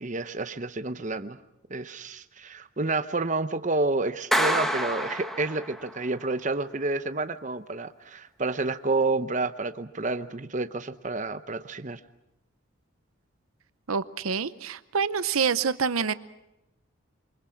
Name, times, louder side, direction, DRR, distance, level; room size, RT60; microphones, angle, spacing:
voice 1, 0.0-1.4 1.7-12.0, right 3 dB, 35° right, 10 dB, 0.8 m, -29 dB
Clapping, 4.3-6.0, equal, ahead, 1.3 m, -27 dB
voice 2, 13.9-16.1, right 6 dB, 90° right, 14 dB, 0.8 m, -26 dB
27.5 x 24.0 x 5.8 m, 0.88 s
head